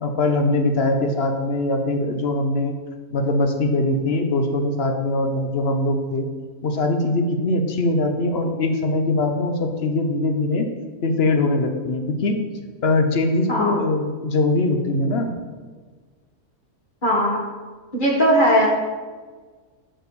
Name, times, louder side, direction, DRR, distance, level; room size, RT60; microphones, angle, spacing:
voice 1, 0.0-2.7 3.1-6.3 6.6-10.7 11.0-12.4 12.8-15.3, left 2 dB, 50° left, 5 dB, 0.9 m, -22 dB
voice 2, 17.0-17.4 17.9-18.7, equal, 35° left, -2 dB, 1.7 m, -18 dB
6.2 x 4.8 x 6.8 m, 1.4 s
omnidirectional pair, 1.6 m